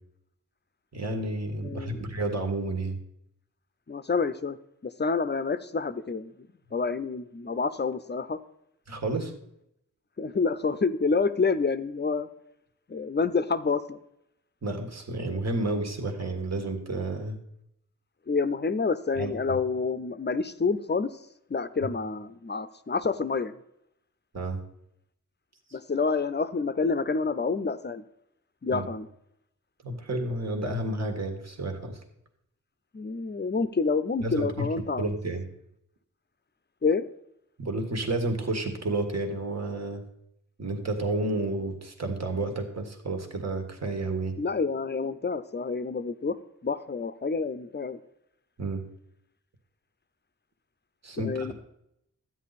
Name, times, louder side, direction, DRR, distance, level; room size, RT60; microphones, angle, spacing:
voice 1, 0.9-3.0 8.9-9.3 14.6-17.4 19.2-19.6 24.3-24.6 28.7-28.9 29.8-32.0 34.2-34.7 35.0-35.4 37.6-40.0 40.6-44.4 48.6-48.8 51.0-51.5, right 2 dB, 50° right, 5 dB, 1.8 m, -31 dB
voice 2, 1.6-2.1 3.9-4.6 4.8-8.4 10.2-12.3 12.9-14.0 18.3-21.2 21.5-23.6 25.7-28.0 28.6-29.1 32.9-35.0 36.8-37.1 44.4-46.4 46.6-48.0 51.2-51.5, left 4 dB, 30° left, 13 dB, 0.6 m, -28 dB
12.5 x 9.4 x 4.2 m, 0.79 s
wide cardioid pair, 85°, 34 cm